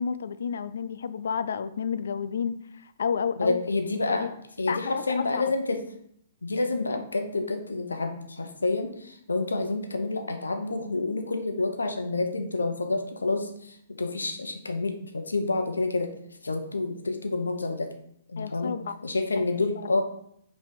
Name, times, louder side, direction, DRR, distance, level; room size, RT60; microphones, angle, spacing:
voice 1, 0.0-2.5 3.0-3.6 4.1-4.3 4.7-5.4 18.4-19.0, left 6 dB, 65° left, 14 dB, 0.4 m, -30 dB
voice 2, 3.4-4.3 4.6-5.8 6.4-16.1 16.4-17.9 18.3-18.7 19.0-20.0, left 3 dB, 80° left, 5 dB, 0.9 m, -28 dB
5.4 x 3.4 x 5.2 m, 0.71 s
figure-of-eight pair, 120°, 0 cm